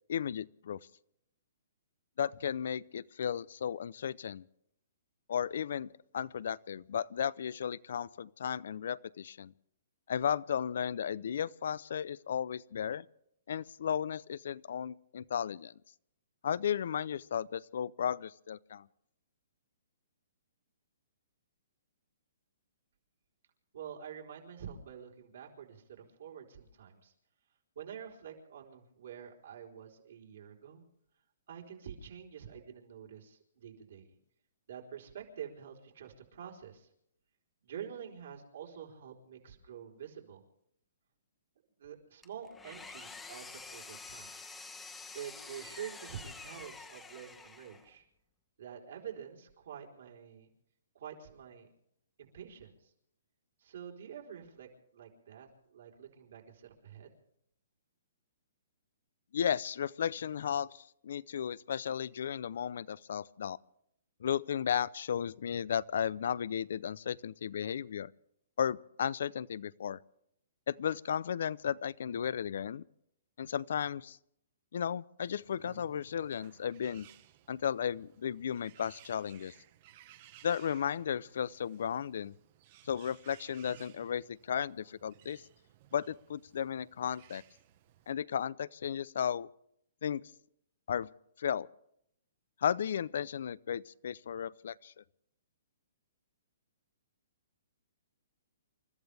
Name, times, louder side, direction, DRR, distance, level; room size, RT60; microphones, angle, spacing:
voice 1, 0.1-0.8 2.2-4.4 5.3-9.5 10.1-13.1 13.5-15.7 16.4-18.9 59.3-63.6 64.2-68.1 68.6-70.0 70.7-72.8 73.4-74.2 74.7-77.1 77.5-79.5 80.4-82.4 82.8-85.4 85.9-87.4 88.1-89.5 90.0-90.2 90.9-91.1 91.4-91.7 92.6-94.9, left 8 dB, 60° left, 0.6 m, -34 dB
voice 2, 23.7-27.1 27.8-30.8 31.5-34.1 34.7-36.9 37.6-40.4 41.8-44.3 45.1-48.0 48.6-50.5 50.9-51.7 52.2-52.9 53.6-57.1, right 8 dB, 60° right, 4.2 m, -47 dB
Engine, 42.2-47.9, left 4 dB, 5° left, 1.2 m, -48 dB
Bird, 75.2-88.1, right 13 dB, 35° right, 1.0 m, -60 dB
28.5 x 14.0 x 3.5 m
hypercardioid pair, 165°, 0 cm